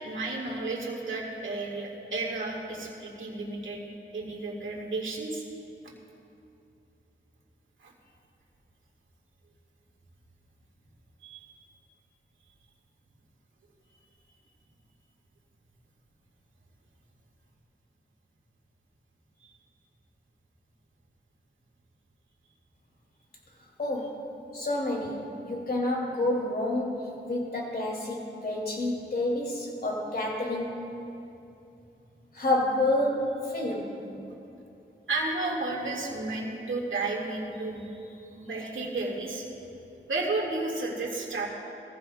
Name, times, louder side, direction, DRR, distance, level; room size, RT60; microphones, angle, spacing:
voice 1, 0.0-3.8 4.1-5.4 7.8-7.9 11.2-11.5 35.1-39.4 40.1-41.5, right 3 dB, 70° right, -3 dB, 2.2 m, -32 dB
voice 2, 23.8-31.0 32.3-34.0, left 1 dB, 50° left, -1 dB, 2.9 m, -29 dB
21.0 x 15.0 x 2.4 m, 2.8 s
wide cardioid pair, 80°, 21 cm